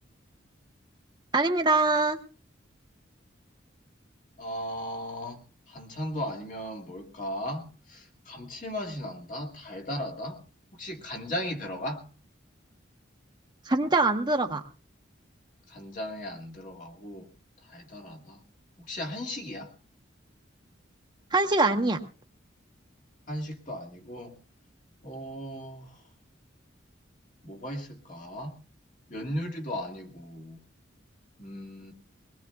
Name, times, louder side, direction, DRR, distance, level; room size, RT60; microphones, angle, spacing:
voice 1, 1.3-2.2 13.7-14.6 21.3-22.0, right 3 dB, 20° right, 4 dB, 0.9 m, -23 dB
voice 2, 4.4-5.4 5.7-10.4 10.8-12.1 15.7-17.3 17.7-18.4 18.9-19.7 23.3-24.3 25.0-25.9 27.4-28.6 29.1-30.6 31.4-31.9, equal, 40° left, 3 dB, 2.1 m, -36 dB
22.0 x 19.0 x 2.3 m, 0.35 s
head